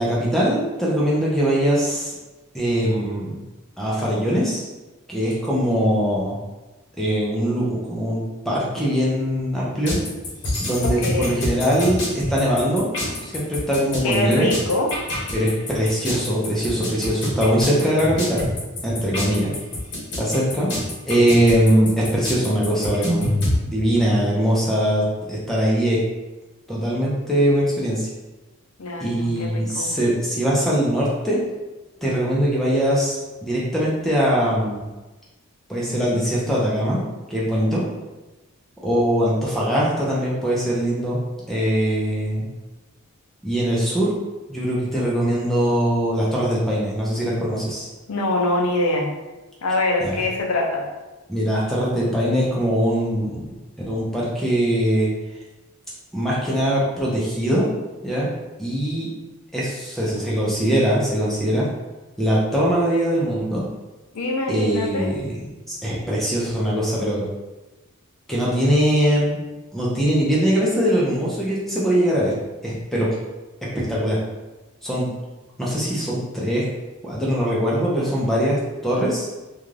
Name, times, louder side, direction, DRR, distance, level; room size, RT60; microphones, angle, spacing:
voice 1, 0.0-2.1 2.5-3.3 3.8-4.6 5.1-6.3 7.0-10.0 10.6-12.9 13.2-14.5 15.3-18.5 18.8-19.5 20.2-20.7 21.1-23.3 23.6-26.0 26.7-28.1 29.0-31.4 32.0-34.8 35.7-37.0 37.3-37.8 38.8-41.2 41.5-42.5 43.4-44.1 44.5-47.9 50.0-50.2 51.3-53.5 53.9-55.1 56.1-57.7 58.0-58.3 58.6-59.1 59.5-61.7 62.2-63.6 64.5-65.3 65.7-67.3 68.3-69.4 69.7-72.3 72.6-73.1 73.9-74.2 74.8-75.1 75.6-76.7 77.0-79.3, equal, ahead, -6 dB, 0.4 m, -21 dB
sound 1, 9.8-23.6, left 1 dB, 50° left, 0.8 m, -27 dB
voice 2, 10.8-11.5 14.0-14.9 28.8-29.9 48.1-49.1 49.6-50.9 64.1-65.2, left 2 dB, 80° left, 1 dB, 0.5 m, -24 dB
2.4 x 2.3 x 3.1 m, 1.1 s
head